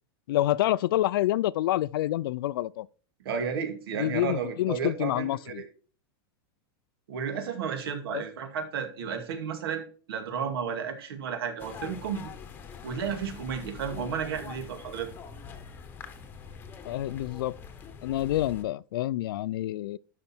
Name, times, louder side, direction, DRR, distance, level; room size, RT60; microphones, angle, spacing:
voice 1, 0.3-2.9 4.0-5.6 8.1-8.2 16.9-17.6 18.0-20.0, left 14 dB, 75° left, 0.4 m, -27 dB
voice 2, 3.2-5.7 7.1-9.8 10.1-12.3 12.8-15.1, right 7 dB, 80° right, 2.3 m, -33 dB
sound 1, 11.6-18.6, left 6 dB, 15° left, 1.0 m, -44 dB
12.0 x 5.3 x 4.4 m
supercardioid pair, 165°, 12 cm